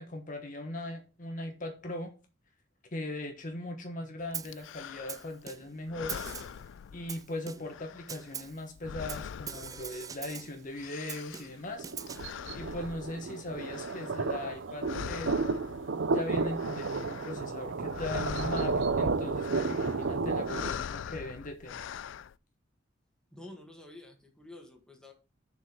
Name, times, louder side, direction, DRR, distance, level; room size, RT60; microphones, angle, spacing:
voice 1, 0.0-2.1 2.9-6.2 6.9-11.9 12.5-15.4 16.1-21.9, left 1 dB, 45° left, 4 dB, 1.3 m, -39 dB
Snare drum, 4.3-4.7 5.1-5.8 6.1-6.6 7.1-7.8 8.1-8.6 9.1-10.6 11.1-12.3, right 7 dB, 20° right, 0.4 m, -42 dB
sound 1, 4.4-5.4 5.8-7.4 7.6-10.3 10.6-14.6 14.8-16.1 16.4-17.5 17.8-22.3, left 8 dB, 85° left, 0.4 m, -42 dB
sound 2, 11.7-20.7, right 4 dB, 85° right, 0.6 m, -32 dB
voice 2, 23.3-25.1, left 2 dB, 5° left, 2 dB, 2.0 m, -49 dB
6.7 x 5.4 x 6.9 m, 0.33 s
head